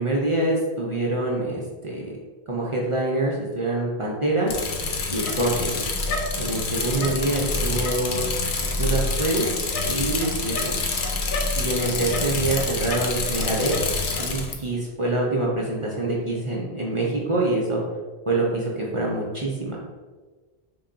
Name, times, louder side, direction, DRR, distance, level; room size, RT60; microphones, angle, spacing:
voice 1, 0.0-2.1 2.5-4.5 5.1-5.8 6.4-8.3 8.8-9.5 9.9-10.7 11.5-13.8 14.2-17.8 18.3-19.8, right 2 dB, 45° right, -4 dB, 0.4 m, -25 dB
Bicycle, 4.5-14.5, left 3 dB, 60° left, 0.7 m, -26 dB
3.6 x 2.2 x 3.8 m, 1.4 s
omnidirectional pair, 1.1 m